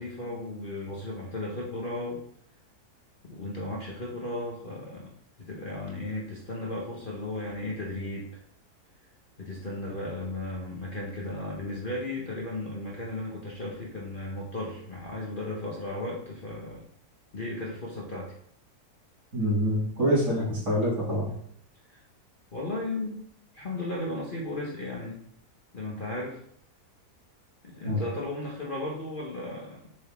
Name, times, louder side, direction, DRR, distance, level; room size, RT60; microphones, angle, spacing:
voice 1, 0.0-2.2 3.2-5.1 5.4-8.4 9.4-16.9 17.3-18.3 21.9-22.0 22.5-23.2 23.5-25.2 25.7-26.4 27.6-29.9, left 2 dB, 40° left, -3 dB, 1.1 m, -35 dB
voice 2, 19.3-21.3 27.8-28.0, equal, 50° right, -8 dB, 3.1 m, -26 dB
7.4 x 4.0 x 3.6 m, 0.64 s
omnidirectional pair, 1.7 m